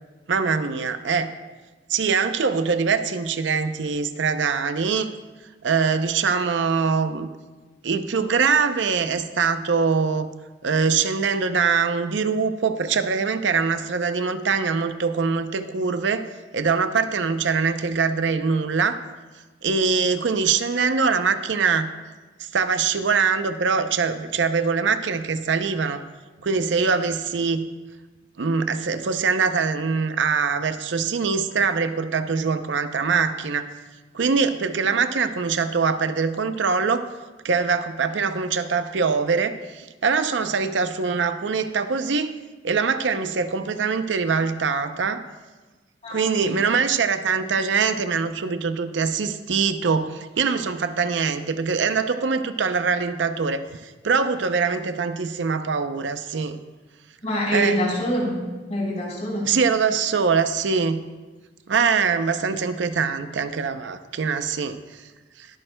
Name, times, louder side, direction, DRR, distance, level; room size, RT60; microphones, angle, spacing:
voice 1, 0.3-1.3 1.9-5.1 5.6-7.3 7.8-10.3 10.6-16.3 16.5-19.0 19.6-21.9 22.4-26.0 26.4-27.7 28.4-33.7 34.1-37.1 37.4-42.3 42.6-45.2 46.1-56.6 57.5-57.8 59.4-61.0 61.7-65.0 65.4-65.5, right 5 dB, 80° right, 10 dB, 0.6 m, -23 dB
voice 2, 46.0-46.6 57.2-59.5, equal, 35° left, -4 dB, 3.9 m, -26 dB
20.5 x 8.8 x 2.2 m, 1.2 s
head